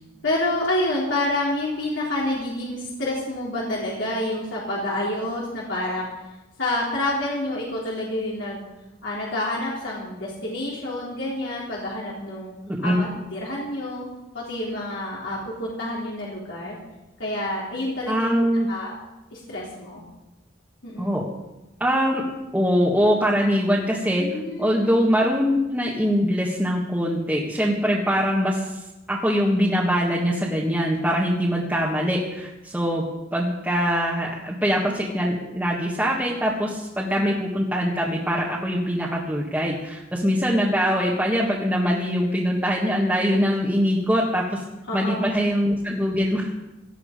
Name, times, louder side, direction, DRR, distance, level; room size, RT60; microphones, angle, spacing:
voice 1, 0.2-6.1 6.6-8.6 9.0-12.5 12.8-14.1 14.3-16.8 17.2-18.3 18.7-18.9 19.3-20.0 20.8-21.1 24.2-24.9 37.1-37.2 44.9-45.4, left 1 dB, 75° left, -5 dB, 3.6 m, -28 dB
voice 2, 12.7-13.0 18.1-18.7 21.0-21.3 21.8-22.2 22.5-24.2 24.6-28.7 29.1-33.0 33.3-44.6 44.9-46.5, equal, 10° right, -5 dB, 1.6 m, -23 dB
18.0 x 12.5 x 5.2 m, 1.0 s
head